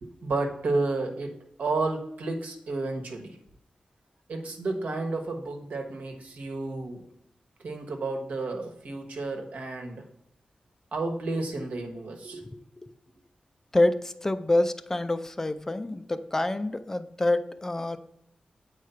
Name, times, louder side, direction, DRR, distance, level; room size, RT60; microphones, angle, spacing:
voice 1, 0.0-1.3 1.6-3.4 4.3-7.0 7.6-10.1 10.9-12.5, right 3 dB, 75° right, 1.2 m, -31 dB
voice 2, 12.4-12.9 13.7-18.0, left 2 dB, 15° left, 0.3 m, -27 dB
8.3 x 4.7 x 5.6 m
wide cardioid pair, 180°, 3 cm